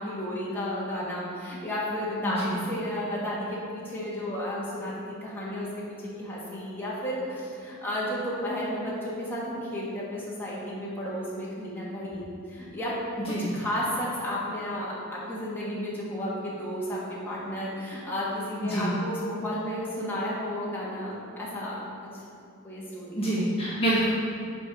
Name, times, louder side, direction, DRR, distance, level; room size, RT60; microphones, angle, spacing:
voice 1, 0.0-12.9 13.2-21.8 22.1-22.2 22.6-23.3, equal, 10° left, -7 dB, 1.6 m, -33 dB
voice 2, 23.2-24.0, right 1 dB, 30° left, -8 dB, 1.4 m, -26 dB
6.8 x 4.5 x 6.0 m, 2.5 s
head